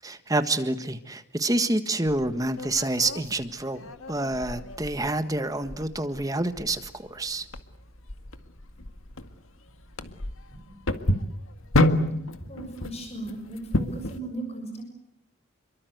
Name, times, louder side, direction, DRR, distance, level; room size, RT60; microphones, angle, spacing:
voice 1, 0.0-7.5, right 2 dB, 15° right, 10 dB, 1.6 m, -28 dB
sound 1, 2.1-14.2, left 1 dB, 85° left, 2.0 m, -30 dB
voice 2, 10.5-10.8 11.2-11.3 12.0-14.8, right 2 dB, 30° left, 4 dB, 6.8 m, -38 dB
29.0 x 23.5 x 8.1 m, 0.77 s
head